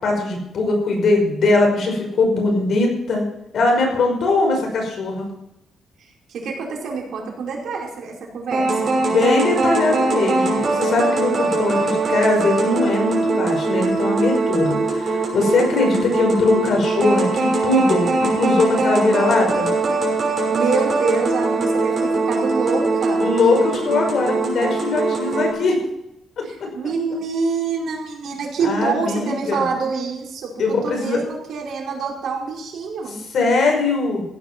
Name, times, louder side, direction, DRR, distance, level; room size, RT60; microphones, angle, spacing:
voice 1, 0.0-3.2 3.5-5.3 8.7-19.7 23.2-25.8 26.4-26.5 28.6-29.7 30.6-31.2 33.3-34.2, left 3 dB, 55° left, 1 dB, 5.6 m, -20 dB
voice 2, 6.3-9.0 20.5-23.3 26.4-30.5 30.8-33.2, right 4 dB, 70° right, -2 dB, 5.0 m, -26 dB
sound 1, 8.5-25.5, right 3 dB, 35° right, 6.0 m, -21 dB
16.0 x 10.0 x 6.1 m, 0.83 s
cardioid pair, 145°, 0 cm